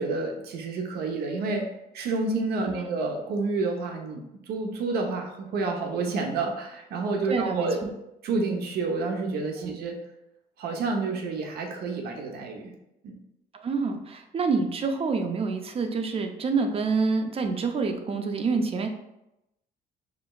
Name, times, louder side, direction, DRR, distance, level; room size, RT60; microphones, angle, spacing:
voice 1, 0.0-1.7 1.9-7.8 8.2-10.0 10.6-12.7 13.0-13.2, right 3 dB, 70° right, 3 dB, 0.8 m, -29 dB
voice 2, 7.3-7.9 9.6-9.8 13.5-18.9, right 4 dB, 35° right, 5 dB, 0.5 m, -27 dB
5.0 x 3.2 x 2.3 m, 0.87 s
cardioid pair, 110°, 17 cm